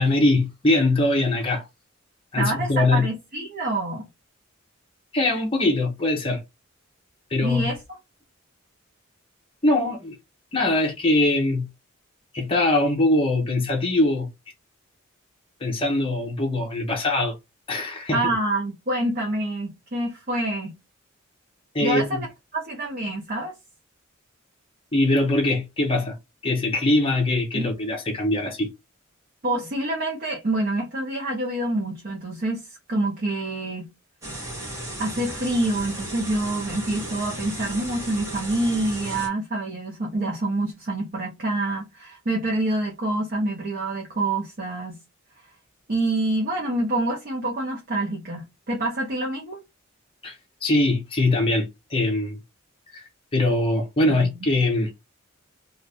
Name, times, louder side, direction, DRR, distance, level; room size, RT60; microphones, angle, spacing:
voice 1, 0.0-1.6 2.3-3.1 5.1-6.4 7.3-7.7 9.6-10.1 10.5-11.7 12.3-14.3 15.6-17.3 17.7-18.3 21.7-22.2 24.9-26.1 26.4-28.7 50.2-50.4 50.6-52.4 52.9-54.9, left 2 dB, 25° left, 0.8 m, -22 dB
voice 2, 2.4-4.1 7.4-8.0 18.1-20.8 21.8-22.3 22.5-23.5 27.5-27.7 29.4-33.9 35.0-45.0 45.9-49.6 54.1-54.3, right 2 dB, 45° right, 0.8 m, -27 dB
sound 1, 34.2-39.3, right 1 dB, 15° right, 1.2 m, -35 dB
2.6 x 2.4 x 3.3 m
head